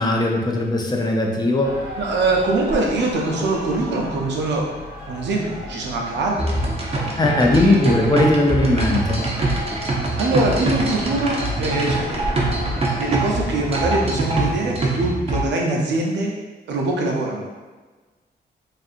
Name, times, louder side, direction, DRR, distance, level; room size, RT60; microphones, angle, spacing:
voice 1, 0.0-1.8 7.2-9.3, left 2 dB, 25° left, 0 dB, 0.4 m, -19 dB
sound 1, 1.6-13.9, left 1 dB, 60° left, 0.8 m, -35 dB
voice 2, 2.0-4.6 5.1-6.6 7.5-7.8 10.2-16.3 16.7-17.5, right 2 dB, 90° right, -1 dB, 0.5 m, -23 dB
sound 2, 6.4-15.4, right 2 dB, 35° right, 0.5 m, -24 dB
2.7 x 2.5 x 2.4 m, 1.3 s
cardioid pair, 85°, 18 cm